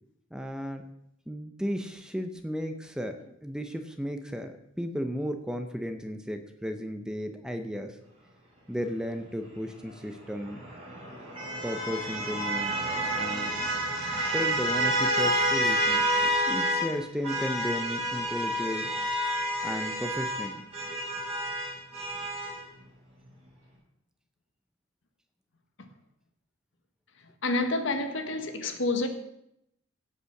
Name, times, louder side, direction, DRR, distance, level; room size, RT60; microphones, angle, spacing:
voice 1, 0.3-0.8 1.3-8.0 8.7-10.6 11.6-12.7 13.1-13.6 14.3-18.9 19.2-19.3 19.6-20.6, equal, 5° right, 0.7 m, -34 dB
sound 1, 10.3-16.9 17.2-22.6, equal, 30° right, 5.3 m, -29 dB
voice 2, 27.4-29.1, left 2 dB, 65° left, 1.4 m, -28 dB
16.5 x 5.6 x 5.9 m
head